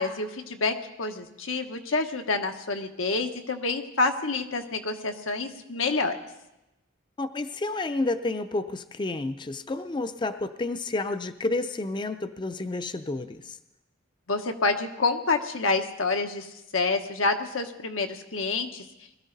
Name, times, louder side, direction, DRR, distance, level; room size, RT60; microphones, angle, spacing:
voice 1, 0.0-6.2 14.3-16.5 16.7-18.8, left 3 dB, 90° left, 5 dB, 1.2 m, -28 dB
voice 2, 7.2-13.6, left 2 dB, 25° left, 10 dB, 0.4 m, -30 dB
21.0 x 13.5 x 4.0 m, 0.94 s
head